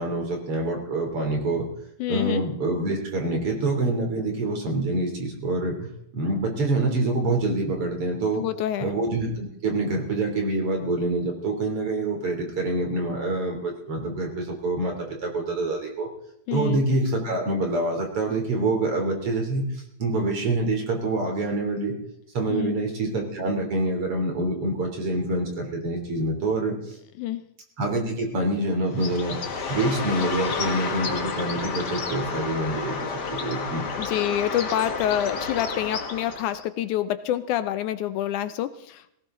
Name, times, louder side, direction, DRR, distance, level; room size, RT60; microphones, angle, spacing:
voice 1, 0.0-1.7 2.1-8.5 8.8-16.1 16.5-22.0 22.3-27.0 27.8-29.4 29.7-33.8, right 2 dB, 45° right, 2 dB, 4.0 m, -26 dB
voice 2, 2.0-2.4 8.4-8.9 16.5-16.8 22.5-22.8 27.2-27.4 34.0-39.1, left 11 dB, 80° left, 12 dB, 2.0 m, -27 dB
Bird, 28.9-36.6, left 4 dB, 45° left, 1.6 m, -31 dB
18.0 x 17.5 x 3.8 m, 0.76 s
omnidirectional pair, 3.7 m